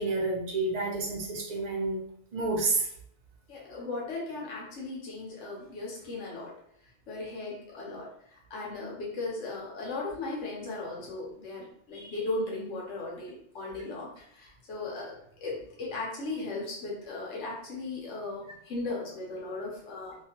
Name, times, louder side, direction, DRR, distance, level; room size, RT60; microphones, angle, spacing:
voice 1, 0.0-2.0 2.3-2.9, right 3 dB, 40° right, -2 dB, 0.7 m, -29 dB
voice 2, 3.5-6.5 7.1-15.1 15.4-20.2, left 2 dB, 85° left, -3 dB, 1.1 m, -37 dB
2.8 x 2.4 x 2.8 m, 0.68 s
omnidirectional pair, 1.2 m